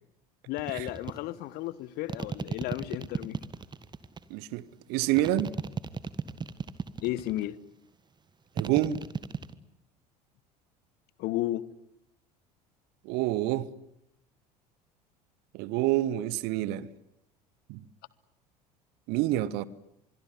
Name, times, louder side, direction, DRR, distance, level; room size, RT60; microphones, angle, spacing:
voice 1, 0.5-3.4 7.0-7.6 11.2-11.7, left 15 dB, 50° left, 1.2 m, -33 dB
sound 1, 0.6-1.2 2.1-4.2 5.2-7.4 8.6-9.5, right 5 dB, 20° right, 1.5 m, -35 dB
voice 2, 4.3-5.5 8.6-9.0 13.0-13.7 15.5-16.9 17.7-17.8 19.1-19.7, right 14 dB, 50° right, 1.2 m, -28 dB
25.5 x 22.5 x 9.6 m
figure-of-eight pair, 65°, 21 cm